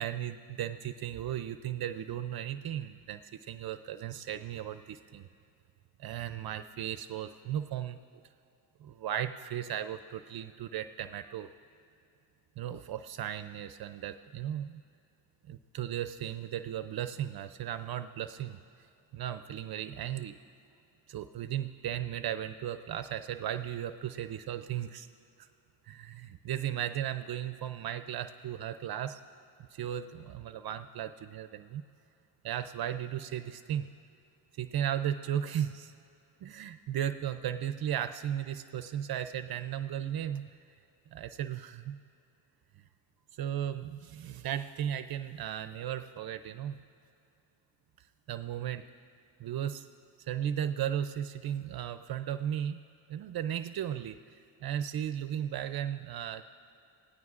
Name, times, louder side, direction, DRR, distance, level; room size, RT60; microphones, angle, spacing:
voice 1, 0.0-3.2 3.5-5.3 6.0-8.2 8.8-11.5 12.6-14.8 15.5-18.6 19.1-20.4 21.1-25.1 25.4-25.5 25.8-29.2 29.7-31.8 32.4-33.9 34.6-35.9 36.4-40.5 41.1-42.0 43.4-46.8 48.3-48.8 49.4-49.9 50.2-52.8 53.1-56.4, right 10 dB, 55° right, 10 dB, 0.5 m, -36 dB
26.5 x 17.0 x 2.5 m, 2.7 s
cardioid pair, 105°, 45 cm